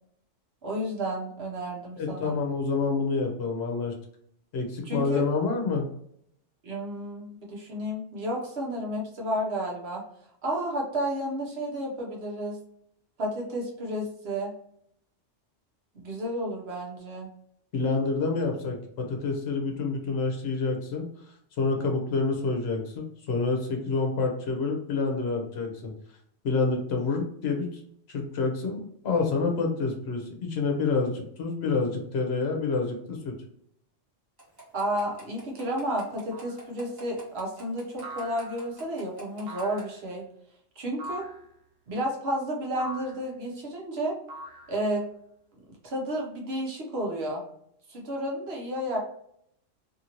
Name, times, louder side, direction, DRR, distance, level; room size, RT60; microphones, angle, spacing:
voice 1, 0.6-2.4 4.9-5.2 6.6-10.0 10.4-12.6 13.2-14.5 15.9-17.3 34.7-40.3 40.8-41.3 41.9-44.2 44.7-45.1 45.8-47.4 47.9-49.0, right 1 dB, 55° right, -1 dB, 1.0 m, -31 dB
voice 2, 2.0-3.9 4.5-5.9 17.7-21.1 21.6-25.9 26.4-27.8 28.1-33.4, left 4 dB, 60° left, 3 dB, 0.9 m, -28 dB
sound 1, 34.4-39.8, right 1 dB, 20° right, 0.9 m, -45 dB
sound 2, 36.3-36.7 38.0-38.8 39.5-40.0 41.0-41.5 42.8-43.3 44.3-45.0, right 1 dB, 85° right, 1.1 m, -42 dB
2.8 x 2.6 x 2.9 m, 0.70 s
omnidirectional pair, 1.3 m